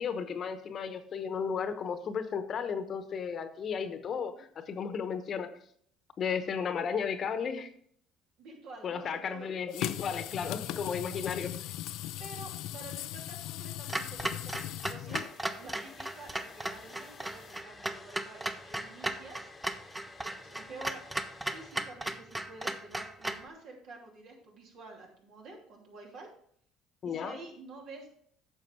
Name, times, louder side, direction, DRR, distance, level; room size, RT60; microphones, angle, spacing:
voice 1, 0.0-5.5 6.2-7.7 8.8-11.7 27.0-27.4, left 6 dB, 50° left, 10 dB, 1.0 m, -34 dB
voice 2, 8.4-9.5 10.6-11.3 12.2-15.3 15.5-19.5 20.2-21.0 21.5-26.3 27.0-28.2, right 3 dB, 65° right, 0 dB, 2.9 m, -49 dB
sound 1, 9.7-17.6, left 14 dB, 70° left, 0.4 m, -40 dB
Clock, 13.9-23.5, right 1 dB, 10° right, 0.8 m, -36 dB
Domestic sounds home sounds, 15.1-21.7, left 4 dB, 25° left, 1.1 m, -53 dB
9.4 x 6.3 x 4.7 m, 0.63 s
hypercardioid pair, 75°, 0 cm